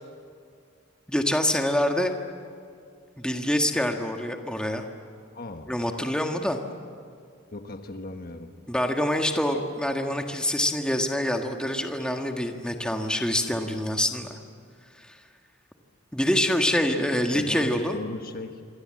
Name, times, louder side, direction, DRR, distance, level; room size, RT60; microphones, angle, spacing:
voice 1, 1.1-2.1 3.2-4.8 5.7-6.6 8.7-14.4 15.0-15.1 16.1-18.0, left 1 dB, 5° left, 3 dB, 1.7 m, -26 dB
voice 2, 5.3-5.7 7.5-8.5 17.3-18.6, left 2 dB, 45° left, 6 dB, 1.3 m, -37 dB
27.5 x 25.0 x 7.7 m, 2.2 s
head